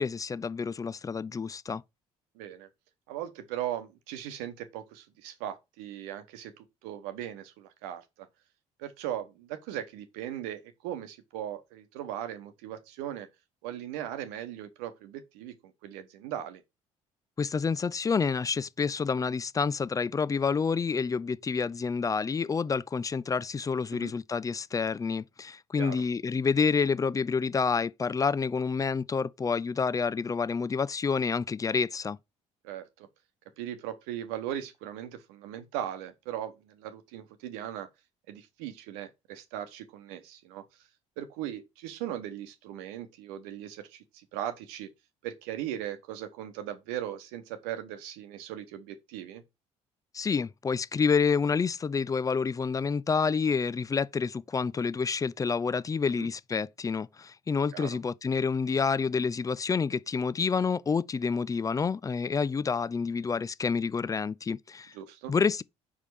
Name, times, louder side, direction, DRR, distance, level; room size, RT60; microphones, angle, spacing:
voice 1, 0.0-1.8 17.4-32.2 50.1-64.9 65.3-65.6, left 5 dB, 20° left, 0.4 m, -28 dB
voice 2, 2.3-2.7 3.1-8.3 8.8-13.3 13.6-16.6 23.9-24.1 25.8-26.0 32.6-33.1 33.6-37.9 38.3-40.6 41.2-44.9 45.2-49.4 56.2-56.3 57.7-58.0 64.9-65.3, right 11 dB, 70° right, 1.0 m, -38 dB
5.5 x 4.9 x 4.7 m
figure-of-eight pair, 50°, 17 cm